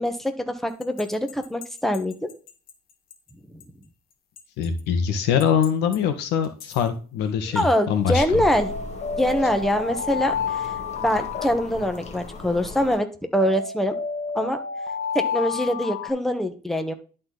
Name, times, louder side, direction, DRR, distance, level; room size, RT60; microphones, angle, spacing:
voice 1, 0.0-2.3 7.5-8.7 9.2-10.7 11.0-13.1 13.3-13.9 14.3-14.6 15.1-16.9, left 1 dB, ahead, 6 dB, 1.3 m, -24 dB
sound 1, 0.8-2.7 3.1-3.2 3.6-3.7 4.4-4.8 5.4-6.0 6.4-6.8 8.5-12.3 13.4-16.1, left 6 dB, 60° left, 1.8 m, -31 dB
voice 2, 4.6-8.5, left 7 dB, 85° left, 8 dB, 1.6 m, -23 dB
sound 2, 7.9-13.0, left 3 dB, 40° left, 1.8 m, -37 dB
11.5 x 4.3 x 4.0 m, 0.36 s
cardioid pair, 110°, 17 cm